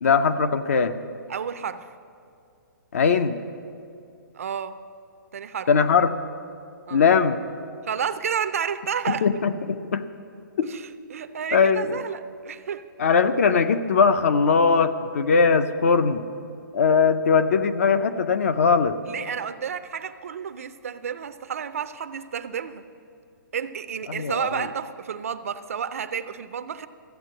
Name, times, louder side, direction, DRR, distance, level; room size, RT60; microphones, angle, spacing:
voice 1, 0.0-1.0 2.9-3.4 5.7-6.2 6.9-7.4 9.1-10.0 10.6-10.7 11.5-12.0 13.0-16.2 16.7-19.0 24.1-24.7, left 5 dB, 45° left, 11 dB, 0.5 m, -20 dB
voice 2, 1.3-1.9 4.3-4.8 5.3-5.7 6.9-7.0 7.8-9.3 10.6-12.9 19.1-22.8 23.5-26.9, right 7 dB, 40° right, 12 dB, 0.4 m, -31 dB
14.0 x 8.2 x 7.6 m, 2.5 s
hypercardioid pair, 175°, 11 cm